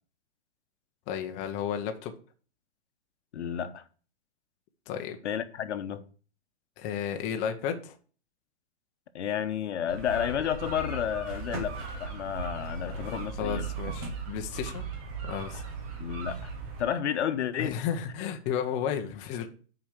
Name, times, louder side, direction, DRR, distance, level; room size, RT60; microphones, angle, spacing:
voice 1, 1.1-2.1 4.9-5.2 6.8-7.9 13.4-14.8 15.2-15.8 17.6-19.5, left 8 dB, 20° left, 0.7 m, -33 dB
voice 2, 3.3-3.8 5.2-6.0 9.1-13.7 16.0-16.5 16.8-17.8, left 9 dB, 85° left, 1.1 m, -31 dB
sound 1, 9.9-16.8, right 4 dB, 10° right, 0.3 m, -37 dB
6.0 x 5.1 x 6.6 m
hypercardioid pair, 155°, 34 cm